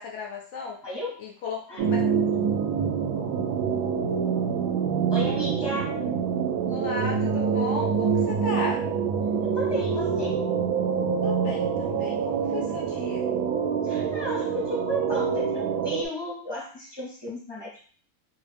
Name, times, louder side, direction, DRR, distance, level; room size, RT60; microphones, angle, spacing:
voice 1, 0.0-0.8 1.2-2.0 6.7-8.9 11.2-13.3, left 4 dB, 80° left, -1 dB, 0.6 m, -35 dB
voice 2, 0.8-1.2 1.7-1.8 5.1-5.9 9.4-10.4 13.8-17.9, left 1 dB, 25° left, -4 dB, 0.5 m, -34 dB
sound 1, 1.8-16.0, right 6 dB, 75° right, 1.1 m, -26 dB
3.1 x 2.5 x 3.4 m, 0.43 s
omnidirectional pair, 1.9 m